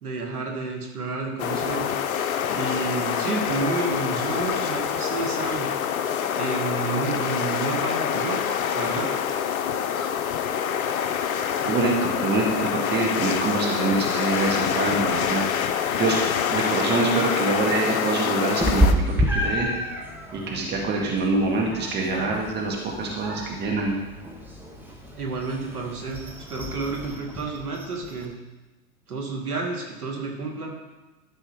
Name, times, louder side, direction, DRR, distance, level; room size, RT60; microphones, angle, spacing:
voice 1, 0.0-1.9 2.5-5.7 6.4-8.4 8.7-9.1 25.2-28.3 29.1-30.7, right 3 dB, 85° right, 1 dB, 2.2 m, -30 dB
sound 1, 1.4-18.9, left 8 dB, 70° left, 0.9 m, -26 dB
voice 2, 11.6-15.4 15.7-16.2 16.5-19.7 20.3-24.0, right 3 dB, 25° right, -1 dB, 2.0 m, -25 dB
Meow, 18.6-28.3, equal, 5° right, 1.4 m, -29 dB
12.5 x 5.3 x 4.9 m, 1.1 s
hypercardioid pair, 110°, 44 cm